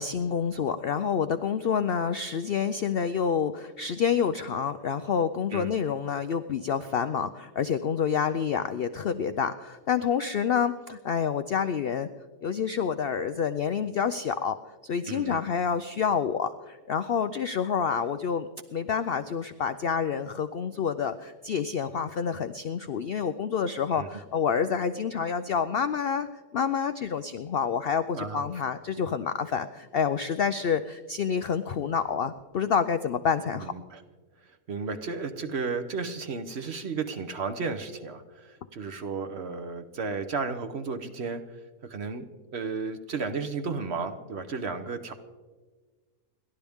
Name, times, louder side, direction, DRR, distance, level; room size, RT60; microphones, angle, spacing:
voice 1, 0.0-12.1 12.4-14.6 14.8-26.3 26.5-33.7, left 7 dB, 85° left, 10 dB, 0.5 m, -28 dB
voice 2, 15.1-15.4 23.9-24.1 28.1-28.4 33.5-34.0 34.7-41.4 41.8-45.1, right 4 dB, 50° right, 9 dB, 1.0 m, -33 dB
29.5 x 12.0 x 3.5 m, 1.4 s
omnidirectional pair, 1.7 m